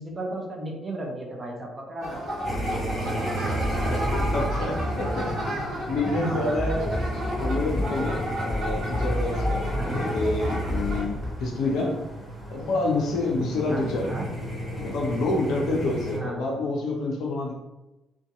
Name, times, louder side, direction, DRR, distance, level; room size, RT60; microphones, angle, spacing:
voice 1, 0.0-2.2 3.5-3.7 6.1-6.7 9.7-10.0 13.7-14.3 16.1-16.6, right 1 dB, 30° right, -2 dB, 0.7 m, -34 dB
sound 1, 2.0-11.0, equal, 55° right, 1.0 m, -33 dB
sound 2, 2.4-16.2, right 1 dB, 5° left, 1.2 m, -34 dB
sound 3, 2.6-11.3, left 1 dB, 15° right, 1.0 m, -31 dB
voice 2, 3.9-5.3 5.8-6.9 7.4-12.0 12.5-14.1 14.8-17.5, left 2 dB, 60° left, 0 dB, 0.4 m, -28 dB
2.6 x 2.5 x 2.3 m, 1.0 s
figure-of-eight pair, 45°, 0 cm